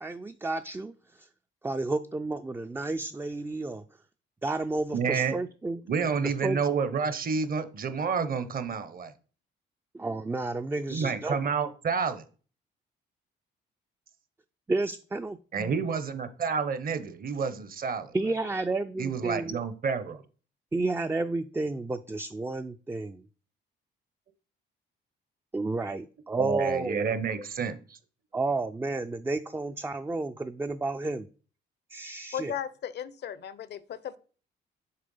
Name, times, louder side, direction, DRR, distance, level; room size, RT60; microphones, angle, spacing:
voice 1, 0.0-1.3 1.6-3.8 4.4-5.8 6.2-6.6 9.9-11.4 14.7-15.8 18.1-19.6 20.7-23.2 25.5-27.1 28.3-31.3 31.9-32.5, right 2 dB, 10° right, 0.3 m, -31 dB
voice 2, 4.9-5.4 5.9-9.1 10.9-12.2 15.5-18.1 19.0-20.2 26.4-28.0, right 5 dB, 45° right, 0.9 m, -29 dB
voice 3, 32.3-34.2, left 9 dB, 60° left, 0.6 m, -36 dB
6.6 x 3.3 x 5.4 m
cardioid pair, 90°, 20 cm